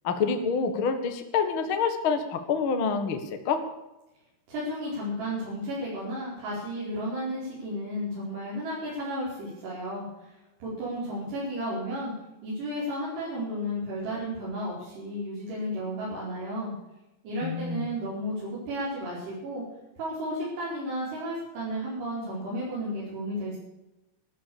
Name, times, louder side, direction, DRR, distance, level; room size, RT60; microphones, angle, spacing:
voice 1, 0.0-3.6 17.4-17.9, left 5 dB, 65° left, 7 dB, 1.2 m, -27 dB
voice 2, 4.5-12.1 12.4-16.7 17.2-19.6 20.0-23.6, equal, 70° right, -8 dB, 6.9 m, -33 dB
13.5 x 13.5 x 7.0 m, 0.97 s
omnidirectional pair, 5.1 m